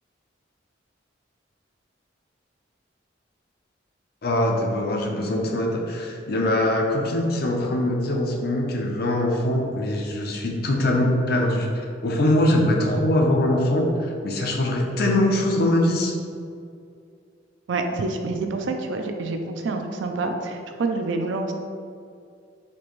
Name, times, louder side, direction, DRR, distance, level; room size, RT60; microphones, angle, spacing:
voice 1, 4.2-16.2, left 1 dB, 55° left, 1 dB, 0.5 m, -22 dB
voice 2, 17.7-21.5, right 3 dB, 80° right, 5 dB, 0.4 m, -27 dB
4.3 x 2.6 x 3.0 m, 2.4 s
head